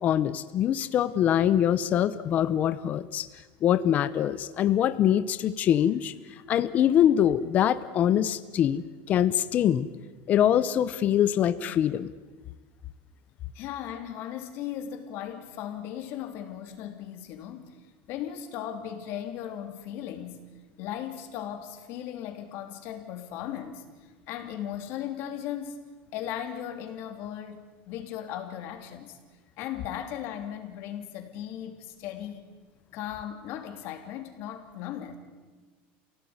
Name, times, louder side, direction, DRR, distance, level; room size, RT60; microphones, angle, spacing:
voice 1, 0.0-3.3 3.6-6.1 6.5-9.9 10.3-12.1, left 10 dB, 30° left, 13 dB, 0.8 m, -24 dB
voice 2, 13.5-17.8 18.1-20.4 20.8-23.9 24.3-25.8 26.1-29.2 29.6-32.5 32.9-35.2, left 10 dB, 45° left, 6 dB, 3.0 m, -37 dB
28.0 x 17.5 x 9.7 m, 1.3 s
cardioid pair, 175°, 6 cm